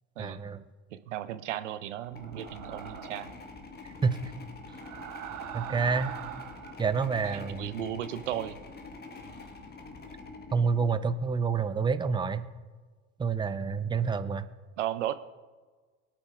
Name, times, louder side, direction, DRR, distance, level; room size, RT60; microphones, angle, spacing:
voice 1, 0.2-0.6 4.0-4.3 5.5-6.1 6.8-7.7 10.5-12.4 13.2-14.5, right 5 dB, 15° right, 11 dB, 0.6 m, -28 dB
voice 2, 0.9-3.3 7.2-8.6 14.8-15.1, right 11 dB, 85° right, 13 dB, 0.6 m, -35 dB
sound 1, 2.0-11.4, left 3 dB, 25° left, 1.3 m, -46 dB
sound 2, 2.2-3.4 4.7-6.8, right 12 dB, 60° right, 0.9 m, -42 dB
23.5 x 8.8 x 2.5 m, 1.4 s
hypercardioid pair, 80°, 35 cm